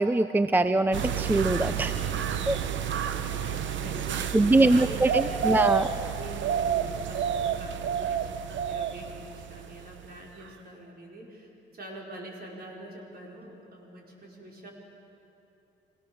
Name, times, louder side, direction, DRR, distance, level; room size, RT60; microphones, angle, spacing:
voice 1, 0.0-1.9 2.5-2.6 4.3-5.9, right 2 dB, 10° right, 11 dB, 0.5 m, -23 dB
sound 1, 0.9-10.2 10.4-10.5, right 8 dB, 70° right, 1.0 m, -30 dB
voice 2, 3.0-5.6 6.1-14.7, right 1 dB, 50° right, -1 dB, 5.1 m, -45 dB
26.5 x 17.5 x 7.0 m, 2.9 s
cardioid pair, 90°, 20 cm